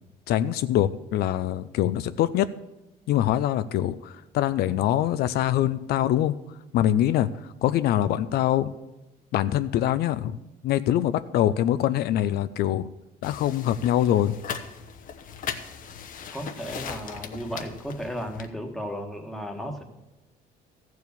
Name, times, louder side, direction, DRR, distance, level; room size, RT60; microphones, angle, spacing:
voice 1, 0.3-2.5 3.1-6.4 6.7-8.7 9.3-10.4 10.6-12.9 13.2-14.4, left 12 dB, 70° left, 13 dB, 0.4 m, -24 dB
sound 1, 13.2-18.5, left 7 dB, 55° left, 0.9 m, -38 dB
voice 2, 16.3-19.8, equal, ahead, 4 dB, 1.3 m, -34 dB
14.0 x 4.7 x 6.8 m, 1.0 s
cardioid pair, 110°, 17 cm